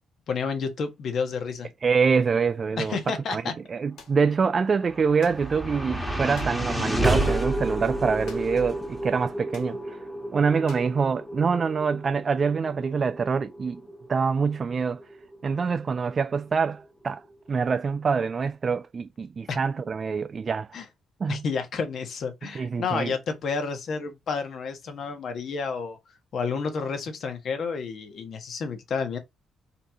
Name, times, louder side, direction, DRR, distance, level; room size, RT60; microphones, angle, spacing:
voice 1, 0.3-1.7 2.8-3.5 19.5-19.6 20.7-20.8 21.3-26.0 26.3-29.2, left 5 dB, 60° left, 1.2 m, -30 dB
voice 2, 1.8-3.0 3.3-3.4 3.7-10.0 10.3-13.8 14.1-15.0 15.4-17.2 17.5-20.7 21.2-21.4 22.4-23.1, right 5 dB, 40° right, 0.3 m, -25 dB
sound 1, 4.0-4.2 5.2-5.5 6.3-6.6 8.3-8.7 8.9-9.0 9.5-9.8 10.7-11.0, left 6 dB, 85° left, 1.4 m, -48 dB
sound 2, 4.5-16.8, right 1 dB, 5° left, 1.3 m, -31 dB
4.2 x 3.0 x 3.9 m
cardioid pair, 90°, 0 cm